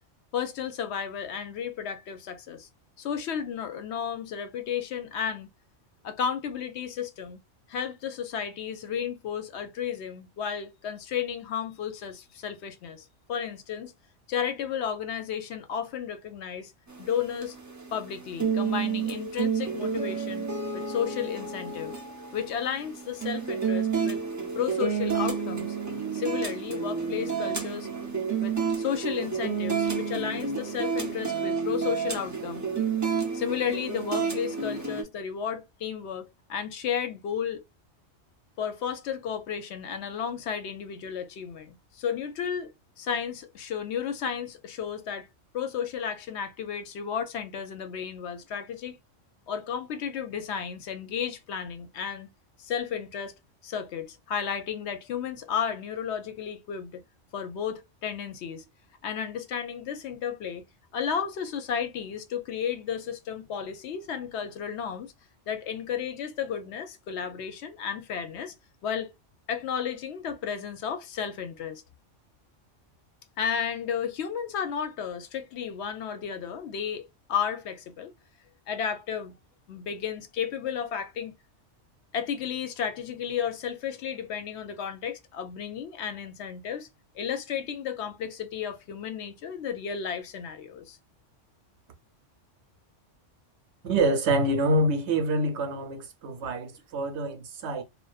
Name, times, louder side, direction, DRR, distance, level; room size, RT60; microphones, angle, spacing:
voice 1, 0.3-2.7 3.0-5.5 6.0-7.4 7.7-13.9 14.3-16.7 17.0-17.6 17.9-20.5 20.7-21.9 22.3-24.2 24.5-25.8 26.1-27.9 28.4-32.6 33.3-37.6 38.6-42.7 43.0-45.3 45.5-49.0 49.5-52.3 52.6-53.3 53.6-57.0 57.3-58.6 59.0-60.6 60.9-65.1 65.5-68.5 68.8-69.1 69.5-71.8 73.4-78.1 78.7-79.3 79.7-81.3 82.1-86.9 87.1-91.0, left 8 dB, 70° left, 0.8 m, -33 dB
sound 1, 16.9-35.0, right 6 dB, 20° right, 0.5 m, -30 dB
voice 2, 93.8-97.8, right 1 dB, 70° right, 0.9 m, -26 dB
2.5 x 2.1 x 2.3 m
omnidirectional pair, 1.2 m